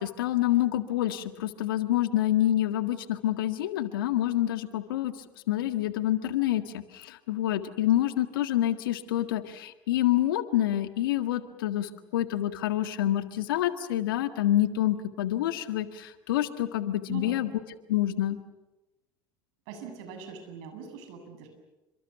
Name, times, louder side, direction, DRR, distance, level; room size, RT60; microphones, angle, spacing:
voice 1, 0.0-5.1 5.5-17.5 17.9-18.4, left 13 dB, 80° left, 10 dB, 1.8 m, -27 dB
voice 2, 17.1-17.5 19.7-21.5, right 6 dB, 70° right, 5 dB, 7.6 m, -42 dB
29.5 x 26.0 x 7.0 m, 1.0 s
hypercardioid pair, 65°, 11 cm